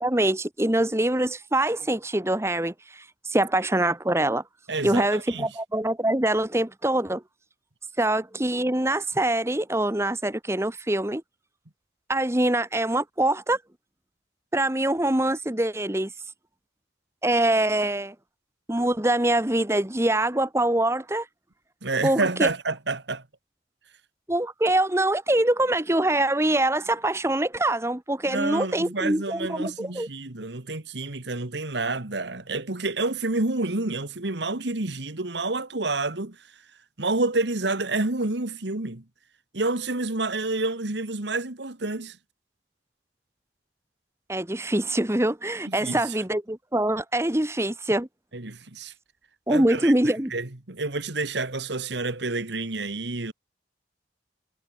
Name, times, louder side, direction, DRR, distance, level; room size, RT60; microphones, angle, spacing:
voice 1, 0.0-3.0 3.3-4.4 4.8-7.2 8.0-11.2 12.1-13.6 14.5-16.1 17.2-18.1 18.7-21.2 22.0-22.5 24.3-30.1 44.3-48.1 49.5-50.3, right 1 dB, 15° right, 1.1 m, -24 dB
voice 2, 4.7-5.5 21.8-23.2 28.3-36.4 37.0-39.0 39.5-42.2 45.7-46.1 48.3-48.9 49.5-53.3, right 3 dB, 70° right, 1.8 m, -29 dB
head